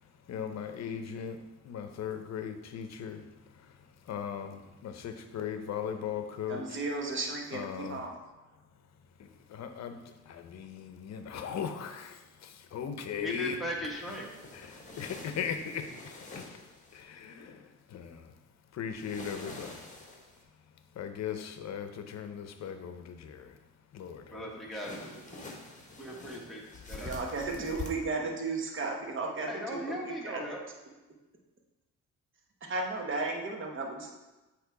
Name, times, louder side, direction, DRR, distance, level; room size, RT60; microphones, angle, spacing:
voice 1, 0.3-1.4 1.7-3.2 4.1-6.6 7.5-8.0 9.2-10.0 10.3-13.6 14.5-16.6 16.9-18.2 18.7-19.8 21.0-23.5 23.9-24.4, left 8 dB, 60° left, 8 dB, 0.7 m, -38 dB
voice 2, 6.5-8.2 27.0-30.6 32.6-34.1, right 3 dB, 40° right, 1 dB, 1.2 m, -35 dB
voice 3, 13.2-14.3 24.3-25.2 26.0-26.6 26.9-27.1 29.5-30.6, left 1 dB, ahead, -4 dB, 1.4 m, -37 dB
sound 1, 13.9-17.0 18.9-20.4 24.7-27.9, left 3 dB, 25° left, 1.3 m, -46 dB
7.9 x 3.1 x 4.7 m, 1.1 s
cardioid pair, 90°, 30 cm